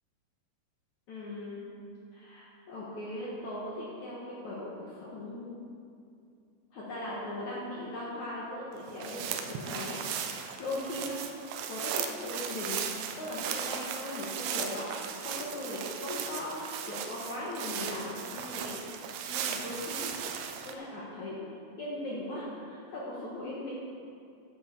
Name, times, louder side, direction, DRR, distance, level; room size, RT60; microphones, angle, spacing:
voice 1, 1.1-1.6 2.1-4.7 5.0-5.6 6.7-10.0 10.4-11.2 11.7-12.8 13.2-18.8 19.3-20.1 20.6-21.4 21.8-23.7, left 1 dB, 55° left, -6 dB, 2.3 m, -39 dB
sound 1, 8.8-20.7, right 8 dB, 90° right, 2.2 m, -37 dB
10.5 x 7.5 x 7.1 m, 2.4 s
omnidirectional pair, 5.0 m